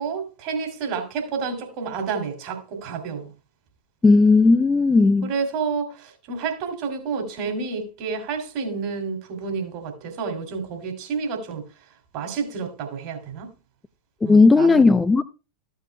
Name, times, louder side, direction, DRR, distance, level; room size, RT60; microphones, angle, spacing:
voice 1, 0.0-3.3 5.2-11.6 12.1-13.5 14.2-14.8, right 5 dB, 45° right, 2.8 m, -29 dB
voice 2, 4.0-5.3 14.3-15.2, left 3 dB, 10° left, 0.4 m, -15 dB
14.5 x 8.2 x 2.2 m
figure-of-eight pair, 90°, 0 cm